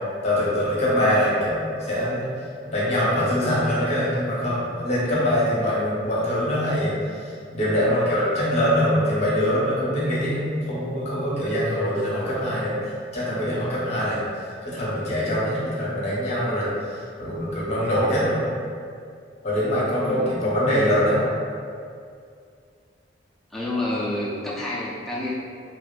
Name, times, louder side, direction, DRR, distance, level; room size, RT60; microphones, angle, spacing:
voice 1, 0.2-2.3 2.7-12.8 13.1-14.2 14.6-16.7 17.2-18.5 19.4-21.3, equal, 35° left, -7 dB, 0.7 m, -23 dB
voice 2, 20.0-20.3 23.5-25.3, left 1 dB, ahead, -8 dB, 0.4 m, -28 dB
2.5 x 2.3 x 2.3 m, 2.3 s
head